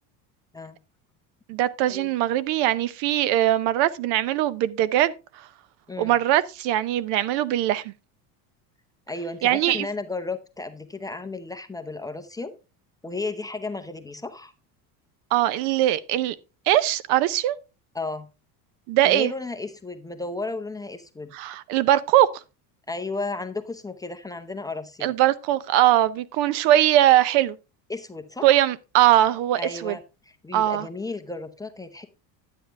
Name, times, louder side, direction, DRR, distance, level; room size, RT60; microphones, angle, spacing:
voice 1, 1.5-5.5 6.0-7.9 9.4-9.9 15.3-16.4 16.7-17.6 18.9-19.3 21.3-22.3 25.0-27.6 28.4-30.0 30.5-30.9, right 13 dB, 65° right, 0.7 m, -21 dB
voice 2, 9.1-12.5 13.0-14.5 17.9-18.3 19.0-21.3 22.9-25.1 27.9-28.6 29.6-30.0 30.3-32.1, left 3 dB, 10° left, 0.7 m, -33 dB
10.5 x 7.3 x 3.4 m
supercardioid pair, 120°, 44 cm